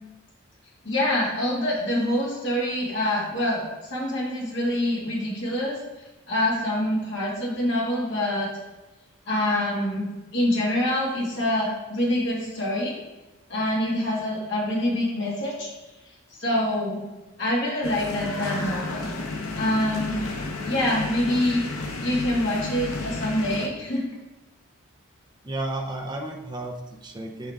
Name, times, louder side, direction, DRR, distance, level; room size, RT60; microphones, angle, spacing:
voice 1, 0.8-5.8 6.3-8.5 9.3-10.1 10.3-13.0 13.5-15.7 16.4-17.0 17.4-19.1 19.5-20.2 20.6-21.6 22.0-24.0, left 1 dB, 55° left, -5 dB, 2.0 m, -25 dB
sound 1, 17.8-23.7, left 2 dB, 85° left, 0.8 m, -32 dB
voice 2, 25.4-27.5, right 2 dB, 20° right, 1 dB, 0.5 m, -33 dB
7.2 x 5.1 x 3.6 m, 1.1 s
head